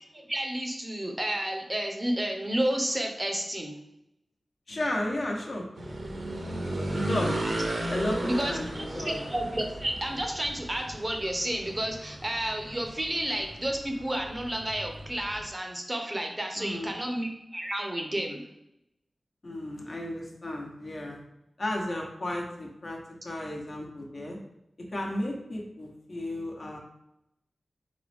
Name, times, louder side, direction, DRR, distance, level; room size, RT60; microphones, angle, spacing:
voice 1, 0.1-3.8 8.2-18.4, right 1 dB, 25° right, 3 dB, 0.6 m, -31 dB
voice 2, 4.7-5.7 6.9-7.4 7.9-9.2 16.6-17.0 19.4-21.2 21.6-23.0 23.2-24.4 24.9-26.8, left 1 dB, 55° left, -1 dB, 1.0 m, -33 dB
sound 1, 5.7-15.5, right 1 dB, 65° right, 0.7 m, -35 dB
3.9 x 3.8 x 3.4 m, 0.84 s
wide cardioid pair, 100°, 0 cm